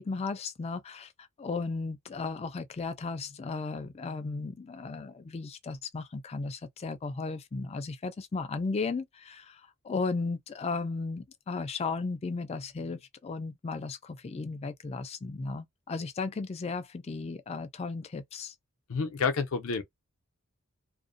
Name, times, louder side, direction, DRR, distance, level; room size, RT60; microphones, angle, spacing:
voice 1, 0.0-18.5, left 4 dB, 30° left, 0.3 m, -35 dB
voice 2, 18.9-19.8, left 5 dB, 80° left, 0.5 m, -29 dB
2.5 x 2.1 x 2.5 m
head